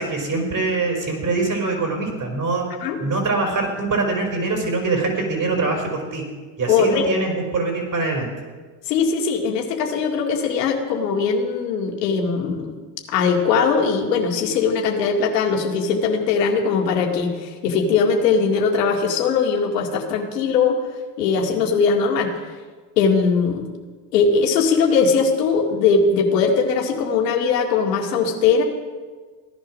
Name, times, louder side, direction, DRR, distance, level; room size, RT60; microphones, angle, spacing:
voice 1, 0.0-2.7 3.0-6.3 6.6-8.3, right 3 dB, 40° right, 2 dB, 5.5 m, -23 dB
voice 2, 6.7-7.1 8.9-12.7 13.1-20.8 21.2-22.3 23.0-23.7 24.1-28.6, left 5 dB, 85° left, 1 dB, 2.2 m, -20 dB
17.0 x 11.0 x 6.3 m, 1.4 s
hypercardioid pair, 80°, 47 cm